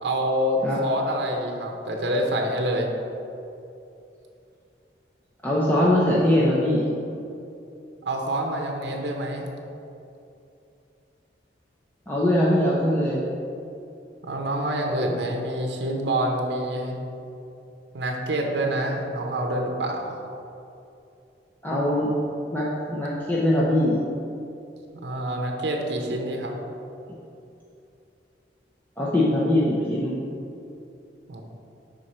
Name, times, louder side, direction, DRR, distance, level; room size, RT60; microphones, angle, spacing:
voice 1, 0.0-2.9 8.0-9.5 14.2-17.0 17.9-20.2 25.0-26.6 31.3-31.4, right 1 dB, 70° right, 2 dB, 0.7 m, -27 dB
voice 2, 5.4-6.9 12.1-13.2 21.6-22.1 22.5-24.0 29.0-30.1, left 1 dB, 10° left, -7 dB, 0.6 m, -22 dB
6.3 x 3.8 x 4.2 m, 2.7 s
head